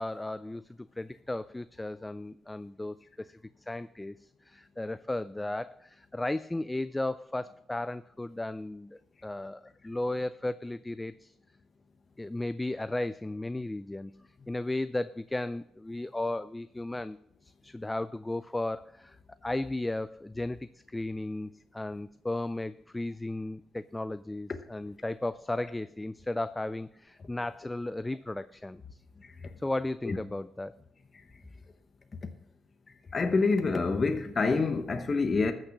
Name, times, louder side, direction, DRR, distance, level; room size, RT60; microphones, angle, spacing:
voice 1, 0.0-3.3 3.7-11.3 12.2-14.1 14.5-17.2 17.4-19.2 19.4-28.8 29.6-30.8, left 2 dB, 10° left, 0.3 m, -35 dB
voice 2, 33.1-35.5, left 4 dB, 35° left, 0.9 m, -26 dB
14.0 x 6.6 x 5.8 m
cardioid pair, 90°, 0 cm